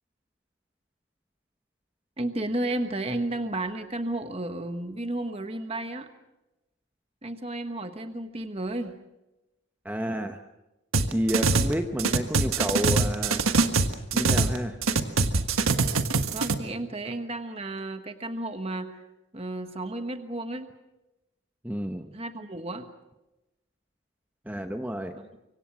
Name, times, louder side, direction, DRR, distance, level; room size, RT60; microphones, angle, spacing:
voice 1, 2.2-6.1 7.2-8.9 16.3-19.0 19.3-20.7 22.1-22.9, right 1 dB, 30° right, 7 dB, 1.3 m, -32 dB
voice 2, 9.8-10.4 11.1-13.5 14.1-14.8 21.6-22.1 24.5-25.2, equal, 10° right, 6 dB, 0.9 m, -30 dB
sound 1, 10.9-11.7 12.0-14.6 14.8-16.5, right 3 dB, 90° right, 1.5 m, -23 dB
25.5 x 24.5 x 6.2 m, 0.98 s
head